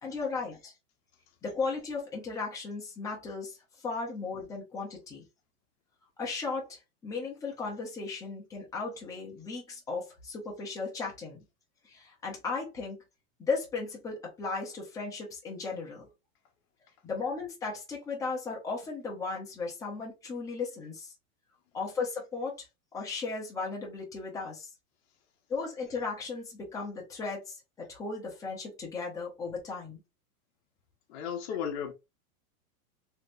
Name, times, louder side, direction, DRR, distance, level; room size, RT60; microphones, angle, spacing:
voice 1, 0.0-0.7 1.4-3.6 3.8-5.2 6.2-11.4 11.8-13.0 13.4-16.1 17.0-21.1 21.7-22.7 22.9-24.7 25.5-30.0, left 4 dB, 5° left, 0.8 m, -36 dB
voice 2, 31.1-31.9, left 8 dB, 45° left, 1.1 m, -34 dB
3.2 x 3.2 x 2.6 m
supercardioid pair, 165°, 45 cm